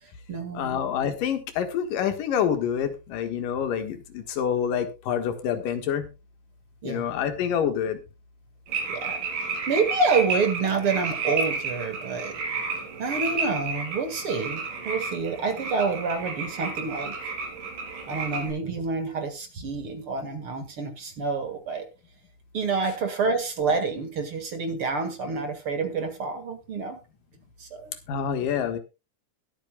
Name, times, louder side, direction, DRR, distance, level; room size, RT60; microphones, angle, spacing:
voice 1, 0.0-0.8 6.8-7.1 8.9-9.2 9.7-12.3 13.0-17.1 18.1-21.9 22.5-27.0 27.6-27.9, right 4 dB, 45° right, 7 dB, 2.4 m, -28 dB
voice 2, 0.5-6.1 6.8-8.0 28.1-28.8, left 8 dB, 80° left, 8 dB, 3.1 m, -27 dB
sound 1, 8.7-18.5, right 4 dB, 75° right, 5.9 m, -32 dB
21.5 x 9.0 x 2.3 m, 0.27 s
omnidirectional pair, 3.8 m